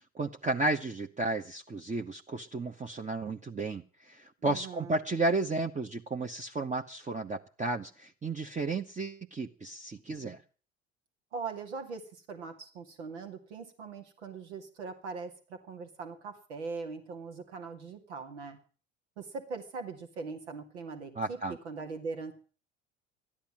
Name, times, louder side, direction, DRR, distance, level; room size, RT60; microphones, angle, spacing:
voice 1, 0.1-10.4 21.1-21.6, right 2 dB, 20° right, 3 dB, 1.1 m, -33 dB
voice 2, 4.4-5.0 11.3-18.6 19.2-21.4 21.6-22.3, right 4 dB, 85° right, 6 dB, 2.3 m, -41 dB
13.5 x 10.5 x 7.4 m, 0.39 s
hypercardioid pair, 65°, 33 cm